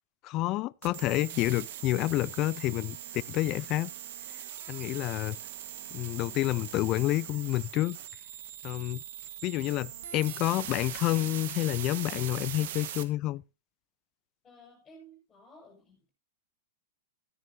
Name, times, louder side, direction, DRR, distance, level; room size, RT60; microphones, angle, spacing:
voice 1, 0.2-3.9 4.7-5.4 5.9-8.0 8.6-9.0 9.4-13.4, left 17 dB, 40° left, 0.4 m, -29 dB
sound 1, 0.8-13.0, right 11 dB, 65° right, 1.3 m, -41 dB
voice 2, 14.4-16.1, right 1 dB, 20° left, 5.4 m, -55 dB
14.0 x 10.5 x 2.7 m
hypercardioid pair, 120°, 0 cm